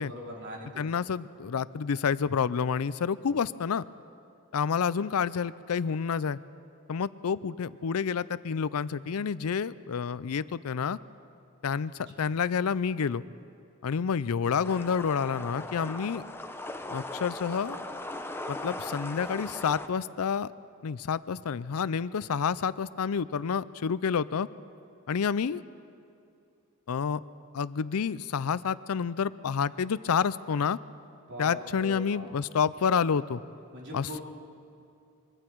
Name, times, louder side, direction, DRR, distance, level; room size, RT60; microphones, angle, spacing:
voice 1, 0.0-0.7 31.3-32.3 33.7-34.2, equal, 55° right, -3 dB, 3.6 m, -40 dB
voice 2, 0.8-3.8 4.5-6.4 6.9-11.0 11.6-13.2 13.8-16.2 16.9-17.8 18.5-20.5 20.8-24.5 25.1-25.6 26.9-27.2 27.5-30.8 31.4-33.4 33.9-34.2, left 6 dB, 75° left, 17 dB, 0.5 m, -29 dB
sound 1, 14.6-19.9, left 2 dB, 10° left, 0.7 m, -39 dB
24.0 x 23.5 x 4.6 m, 2.6 s
head